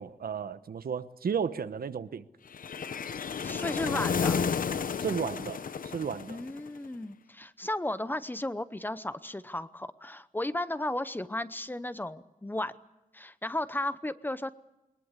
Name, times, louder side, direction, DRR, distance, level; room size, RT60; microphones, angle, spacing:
voice 1, 0.0-2.2 3.9-4.0 5.0-6.4, right 7 dB, 90° right, 1.1 m, -34 dB
sound 1, 2.5-6.8, left 6 dB, 70° left, 0.8 m, -32 dB
voice 2, 3.4-4.5 6.3-12.7 13.1-14.5, left 1 dB, 15° left, 0.7 m, -34 dB
22.5 x 21.0 x 8.2 m
wide cardioid pair, 165°, 15 cm